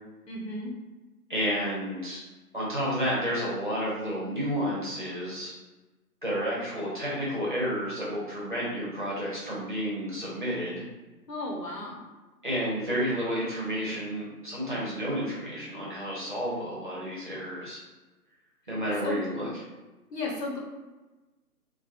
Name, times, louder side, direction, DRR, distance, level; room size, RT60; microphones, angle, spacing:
voice 1, 0.3-0.7 11.3-12.0 19.0-19.2 20.1-20.6, left 2 dB, 85° left, -1 dB, 1.0 m, -34 dB
voice 2, 1.3-2.2 2.5-5.5 6.2-10.8 12.4-17.8 18.7-19.5, equal, 35° right, -6 dB, 0.7 m, -31 dB
2.9 x 2.1 x 2.5 m, 1.1 s
hypercardioid pair, 165°, 48 cm